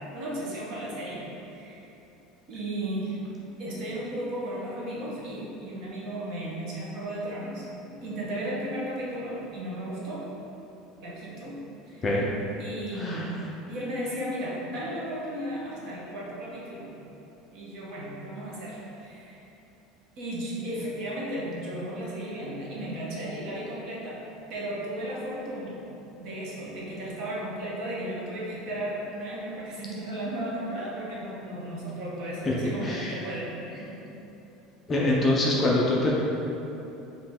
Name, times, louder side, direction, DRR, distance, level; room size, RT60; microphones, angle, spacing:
voice 1, 0.1-1.9 2.5-3.2 3.6-10.3 11.0-11.6 11.9-12.0 12.6-13.3 13.7-16.9 17.5-19.4 20.2-24.2 24.5-25.8 26.2-34.0, right 1 dB, 45° right, -5 dB, 1.0 m, -35 dB
voice 2, 13.0-13.3 32.4-33.1 34.9-36.1, left 1 dB, 15° left, -4 dB, 0.4 m, -25 dB
5.0 x 2.8 x 3.5 m, 3.0 s
cardioid pair, 180°, 0 cm